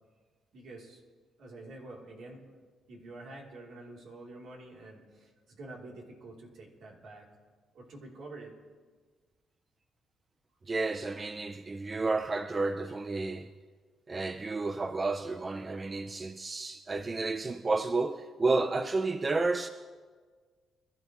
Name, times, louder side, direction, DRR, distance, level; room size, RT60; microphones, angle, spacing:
voice 1, 0.5-1.0 1.4-2.4 2.9-7.2 7.7-8.5, right 2 dB, 70° right, 3.3 m, -47 dB
voice 2, 10.7-13.5 14.1-19.7, right 3 dB, 30° right, 0.5 m, -31 dB
23.5 x 13.5 x 3.1 m
cardioid pair, 90°, 0 cm